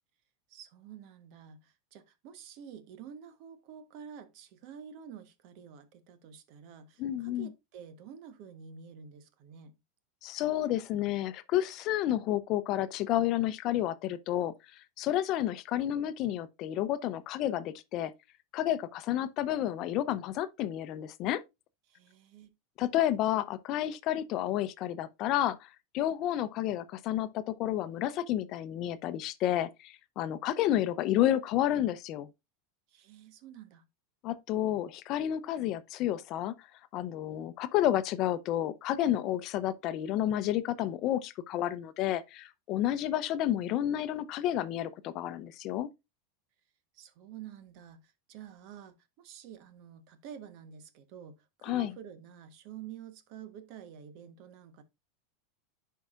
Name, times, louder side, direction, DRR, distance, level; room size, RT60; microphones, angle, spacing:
voice 1, 0.5-9.8 21.9-22.5 32.9-33.9 46.9-54.8, right 8 dB, 60° right, 1.2 m, -49 dB
voice 2, 7.0-7.5 10.2-18.1 18.5-21.4 22.8-32.3 34.2-36.5 36.9-45.9 51.6-51.9, left 12 dB, 50° left, 0.6 m, -30 dB
10.5 x 4.6 x 2.5 m
supercardioid pair, 120°, 0 cm